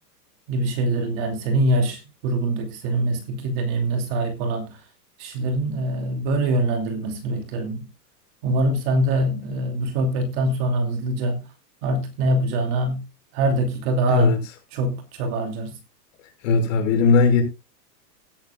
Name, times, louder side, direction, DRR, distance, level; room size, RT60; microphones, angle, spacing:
voice 1, 0.5-4.7 5.2-7.8 8.4-11.4 11.8-13.0 13.3-14.3 14.7-15.7, right 1 dB, 35° right, 2.7 m, -24 dB
voice 2, 14.1-14.4 16.4-17.4, left 4 dB, 50° left, 5.5 m, -17 dB
16.0 x 12.5 x 2.4 m
supercardioid pair, 165°, 49 cm